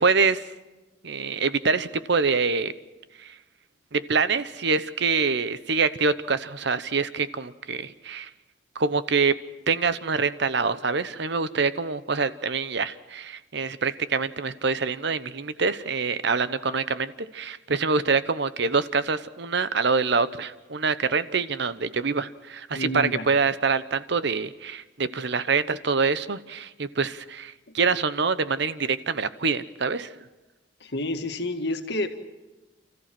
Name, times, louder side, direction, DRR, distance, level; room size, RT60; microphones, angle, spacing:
voice 1, 0.0-0.4 1.0-2.7 3.2-3.3 3.9-8.3 8.7-9.3 9.7-30.1, right 4 dB, 65° right, 14 dB, 0.9 m, -25 dB
voice 2, 22.7-23.2 30.8-32.1, left 1 dB, 65° left, 6 dB, 1.9 m, -29 dB
30.0 x 14.5 x 7.7 m, 1.1 s
head